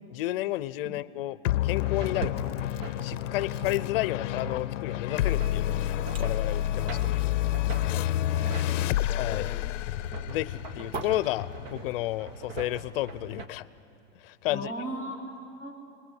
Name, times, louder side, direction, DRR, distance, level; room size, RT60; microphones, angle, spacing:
voice 1, 0.1-1.4 1.6-2.3 3.0-5.7 6.2-7.4 9.2-9.5 10.2-13.7 14.2-14.7, left 16 dB, 50° left, 17 dB, 0.7 m, -31 dB
sound 1, 1.4-12.2, left 13 dB, 85° left, 0.6 m, -29 dB
sound 2, 1.8-13.5, right 4 dB, 45° right, 1.4 m, -43 dB
sound 3, 2.0-14.0 14.4-14.5, right 3 dB, 75° right, 2.1 m, -45 dB
voice 2, 8.2-9.1 14.5-16.0, right 1 dB, 30° right, -6 dB, 3.4 m, -39 dB
27.0 x 21.0 x 8.0 m, 2.5 s
supercardioid pair, 160°, 36 cm